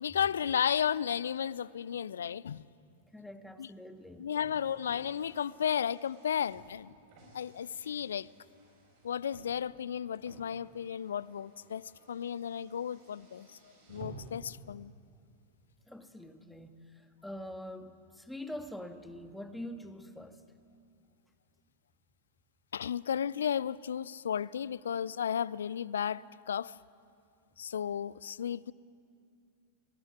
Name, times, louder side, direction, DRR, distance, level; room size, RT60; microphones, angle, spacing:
voice 1, 0.0-2.6 3.6-3.7 4.2-6.9 7.3-8.3 9.0-13.5 13.9-14.9 22.7-26.7 27.6-28.7, left 8 dB, 65° left, 0.4 m, -33 dB
voice 2, 3.1-4.3 15.9-20.4, left 1 dB, 5° left, 1.6 m, -44 dB
Car, 3.9-14.5, right 2 dB, 45° right, 7.0 m, -55 dB
19.5 x 16.5 x 9.4 m
figure-of-eight pair, 90°, 0 cm